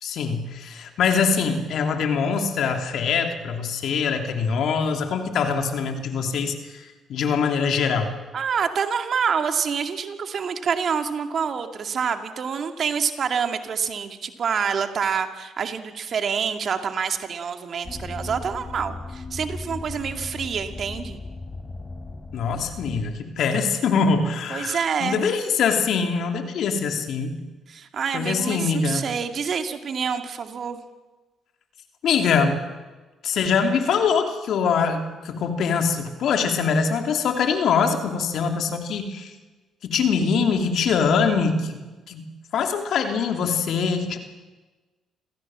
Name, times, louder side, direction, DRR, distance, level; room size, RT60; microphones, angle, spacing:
voice 1, 0.0-8.1 22.3-27.4 28.1-29.1 32.0-32.6 33.2-39.3 39.8-41.8 42.1-42.2 42.5-44.2, left 5 dB, 70° left, 5 dB, 2.7 m, -23 dB
voice 2, 8.3-21.2 24.5-25.2 27.7-30.8, right 6 dB, 55° right, 7 dB, 2.2 m, -27 dB
sound 1, 17.8-23.0, left 3 dB, 25° left, 4.4 m, -37 dB
27.0 x 16.5 x 7.5 m, 1.3 s
hypercardioid pair, 55°, 0 cm